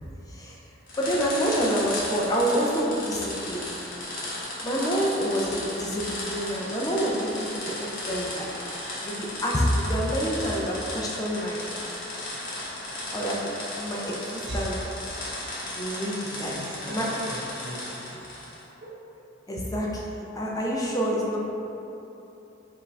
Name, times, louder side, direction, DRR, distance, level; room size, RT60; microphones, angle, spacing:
sound 1, 0.9-18.6, left 1 dB, 45° left, 1.1 m, -35 dB
voice 1, 1.0-3.7 4.6-7.3 7.6-8.5 9.0-11.6 13.1-13.4 13.8-14.8 15.7-16.5 16.8-17.1 19.5-21.4, equal, 20° left, -3 dB, 0.4 m, -27 dB
voice 2, 16.1-18.2 18.8-18.9, equal, 60° right, -4 dB, 0.7 m, -38 dB
5.6 x 2.5 x 3.2 m, 2.9 s
head